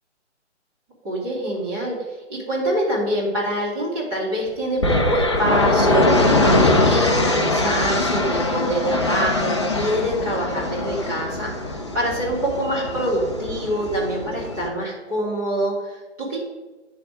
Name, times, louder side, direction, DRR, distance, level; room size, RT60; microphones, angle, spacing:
voice 1, 1.0-2.0 2.3-16.4, right 1 dB, 20° right, -6 dB, 2.5 m, -25 dB
sound 1, 4.8-14.7, left 2 dB, 25° left, 0.5 m, -22 dB
10.0 x 3.5 x 4.7 m, 1.2 s
figure-of-eight pair, 140°, 35 cm